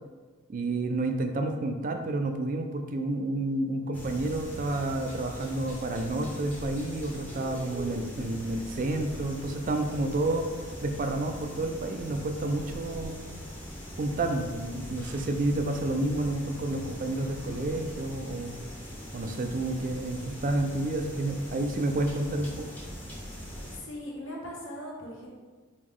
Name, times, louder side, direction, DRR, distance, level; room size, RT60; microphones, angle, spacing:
voice 1, 0.5-10.5 10.8-13.2 14.0-18.6 19.1-22.7, right 2 dB, 40° right, 5 dB, 0.4 m, -30 dB
sound 1, 3.9-23.8, equal, 10° left, 0.7 m, -41 dB
voice 2, 23.7-25.3, left 1 dB, 70° left, -2 dB, 1.0 m, -40 dB
5.0 x 2.3 x 3.6 m, 1.4 s
head